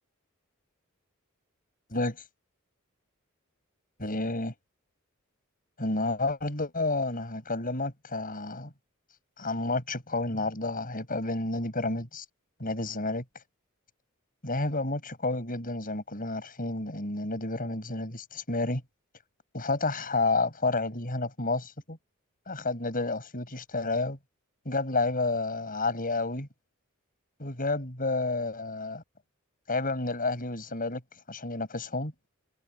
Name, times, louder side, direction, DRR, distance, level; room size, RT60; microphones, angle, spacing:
voice 1, 1.9-2.2 4.0-4.5 5.8-8.7 9.4-12.3 12.6-13.2 14.4-18.8 19.5-22.0 22.5-24.2 24.6-26.5 27.4-29.0 29.7-31.0 31.3-32.1, left 3 dB, 40° left, 7.8 m, -30 dB
head